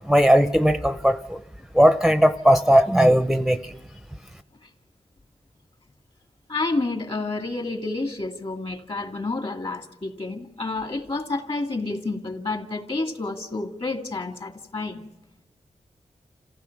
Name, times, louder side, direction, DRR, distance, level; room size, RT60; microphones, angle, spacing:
voice 1, 0.1-1.4 1.7-3.7, equal, ahead, 8 dB, 0.6 m, -18 dB
voice 2, 6.5-15.0, left 3 dB, 45° left, 4 dB, 2.3 m, -29 dB
28.5 x 16.0 x 6.0 m, 0.93 s
wide cardioid pair, 105°, 13 cm